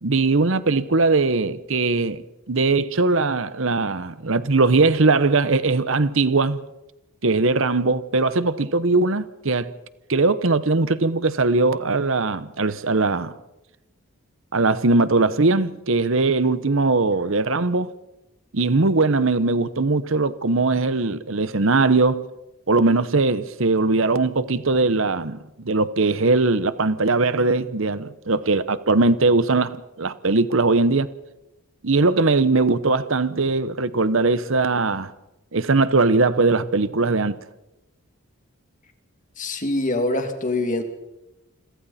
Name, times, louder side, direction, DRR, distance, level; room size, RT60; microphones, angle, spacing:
voice 1, 0.0-6.6 7.2-9.7 10.1-13.3 14.5-17.9 18.5-22.3 22.7-31.1 31.8-35.1 35.5-37.4, right 3 dB, 60° right, 0.9 m, -20 dB
voice 2, 39.4-40.8, left 2 dB, 35° left, 2.6 m, -24 dB
28.5 x 22.0 x 4.3 m
head